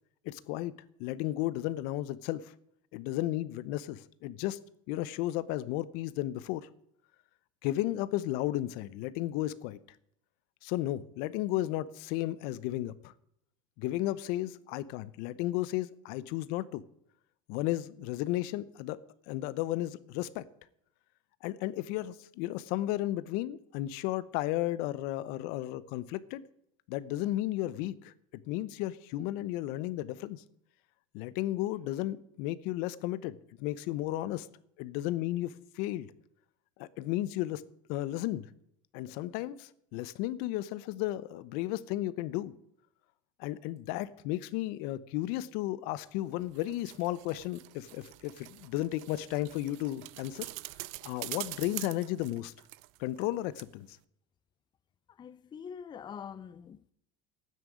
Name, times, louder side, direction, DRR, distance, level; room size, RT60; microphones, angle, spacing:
voice 1, 0.2-0.7 1.0-2.5 2.9-4.6 4.9-6.7 7.6-9.8 10.6-13.1 13.8-16.8 17.5-19.0 19.3-20.5 21.4-26.4 26.9-28.1 28.5-30.4 31.1-34.5 34.8-36.1 36.8-37.6 37.9-38.5 38.9-42.5 43.4-50.5 51.0-52.5 53.0-54.0, left 15 dB, 65° left, 0.8 m, -34 dB
sound 1, 46.3-53.3 53.6-53.7, right 21 dB, 70° right, 0.6 m, -45 dB
voice 2, 55.2-56.9, left 7 dB, 25° left, 0.6 m, -44 dB
9.5 x 9.0 x 9.9 m
supercardioid pair, 105°, 16 cm